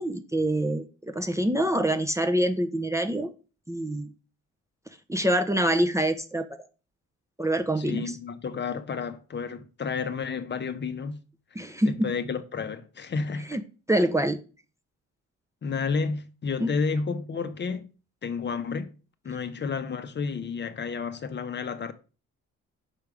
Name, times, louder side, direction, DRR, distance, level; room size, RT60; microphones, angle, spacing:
voice 1, 0.0-3.3 3.7-4.1 5.1-6.6 7.4-8.0 11.6-12.1 13.5-13.6 13.9-14.4 16.6-16.7, right 1 dB, 10° right, 0.5 m, -25 dB
voice 2, 7.8-11.2 11.6-13.6 15.6-17.9 18.2-18.9 19.2-21.9, left 5 dB, 35° left, 0.7 m, -31 dB
5.8 x 3.4 x 4.9 m
cardioid pair, 90°, 30 cm